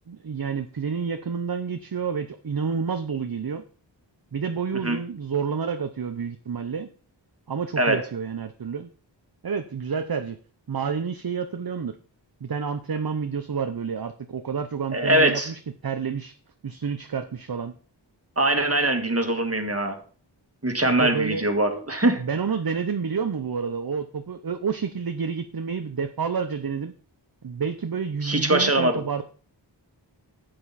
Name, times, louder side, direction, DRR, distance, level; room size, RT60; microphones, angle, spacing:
voice 1, 0.1-3.6 4.3-6.9 7.5-8.9 9.4-10.4 10.7-11.9 12.4-16.3 16.6-17.7 20.8-21.5 22.2-26.9 27.4-29.2, right 6 dB, 50° right, 8 dB, 0.7 m, -29 dB
voice 2, 14.9-15.5 18.4-20.0 20.6-22.2 28.2-29.0, right 1 dB, 30° right, 5 dB, 1.8 m, -22 dB
11.5 x 7.9 x 4.1 m, 0.43 s
wide cardioid pair, 55°, 45 cm